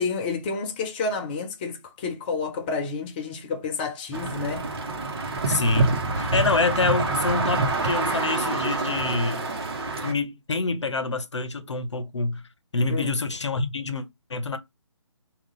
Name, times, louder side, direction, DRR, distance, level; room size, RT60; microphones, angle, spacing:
voice 1, 0.0-4.7 12.9-13.1, left 4 dB, 20° left, 0.5 m, -30 dB
sound 1, 4.1-10.1, right 3 dB, 55° right, 1.0 m, -26 dB
voice 2, 5.5-9.5 10.0-12.4 12.7-14.6, left 3 dB, 65° left, 0.7 m, -26 dB
3.7 x 2.4 x 3.7 m
figure-of-eight pair, 145°, 16 cm